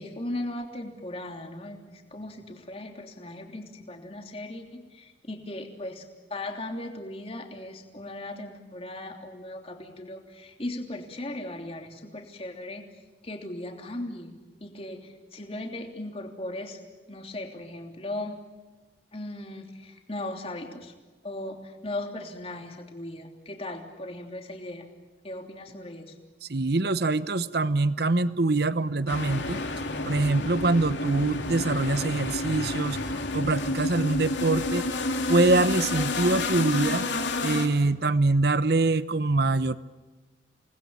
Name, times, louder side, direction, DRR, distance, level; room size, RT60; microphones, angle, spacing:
voice 1, 0.0-12.8 13.2-16.8 17.1-18.4 19.1-20.9 21.2-24.9 25.2-26.2, left 1 dB, 30° left, 3 dB, 3.2 m, -38 dB
voice 2, 26.5-29.6 30.1-33.0 33.3-34.9 35.3-37.0 37.4-39.8, right 2 dB, 55° right, 15 dB, 0.9 m, -24 dB
sound 1, 29.1-37.7, left 2 dB, 70° left, 3.0 m, -30 dB
28.0 x 20.0 x 8.9 m, 1.3 s
head